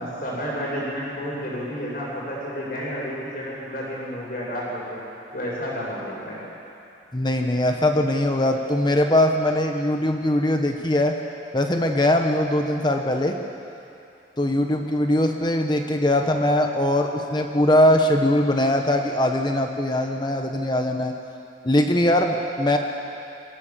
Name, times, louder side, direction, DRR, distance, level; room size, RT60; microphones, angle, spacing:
voice 1, 0.0-5.0 5.3-6.4, equal, 50° left, -5 dB, 7.2 m, -31 dB
voice 2, 7.1-11.1 11.5-13.4 14.4-21.1 21.6-22.8, left 1 dB, 25° left, 4 dB, 1.0 m, -21 dB
23.0 x 16.5 x 7.5 m, 2.7 s
head